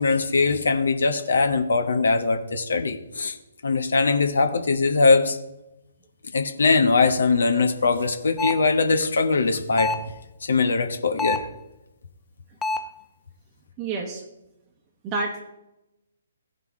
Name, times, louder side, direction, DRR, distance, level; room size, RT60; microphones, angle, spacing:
voice 1, 0.0-3.4 3.6-5.4 6.3-10.0 10.4-11.5, left 4 dB, 65° left, 6 dB, 1.0 m, -21 dB
sound 1, 8.4-8.7 9.8-10.1 11.2-11.6 12.6-13.0, left 2 dB, 10° left, 0.3 m, -27 dB
voice 2, 13.8-14.2 15.0-15.4, right 3 dB, 25° right, 0 dB, 1.1 m, -28 dB
16.0 x 5.4 x 3.7 m, 0.92 s
figure-of-eight pair, 130°, 0 cm